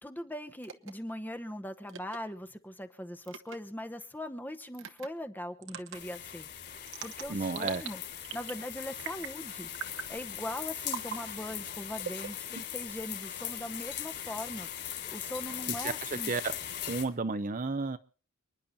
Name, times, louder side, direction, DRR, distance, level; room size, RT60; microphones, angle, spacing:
voice 1, 0.0-8.0 8.3-9.7 10.1-14.7 15.0-16.3, left 1 dB, 10° left, 8 dB, 0.9 m, -40 dB
sound 1, 0.6-0.9 1.9-2.2 3.2-3.6 4.7-5.1 5.6-6.0 6.9-7.9 8.2-8.6 9.0-9.4 9.7-10.1 10.9-11.2 12.0-12.9, right 7 dB, 55° right, 1.0 m, -41 dB
sound 2, 5.9-17.0, left 10 dB, 50° left, 3.5 m, -40 dB
voice 2, 7.3-7.8 15.8-16.5 16.9-18.0, right 4 dB, 35° right, 11 dB, 0.6 m, -32 dB
29.0 x 10.5 x 2.7 m, 0.40 s
head